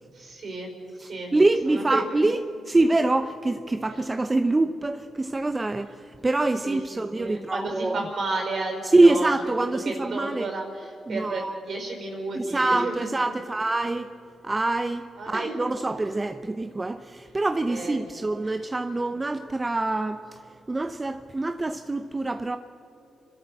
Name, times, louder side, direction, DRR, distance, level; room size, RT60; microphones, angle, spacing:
voice 1, 0.2-0.7 1.0-1.3 1.7-2.2 6.6-6.8 7.2-9.3 9.8-13.1 15.2-15.6 17.7-18.0 18.4-18.5, right 3 dB, 60° right, 3 dB, 5.1 m, -32 dB
voice 2, 1.0-8.0 8.8-10.5 11.1-11.6 12.3-14.1 14.4-22.6, right 2 dB, 25° right, 9 dB, 0.8 m, -25 dB
28.0 x 12.5 x 7.7 m, 2.7 s
supercardioid pair, 55°, 0 cm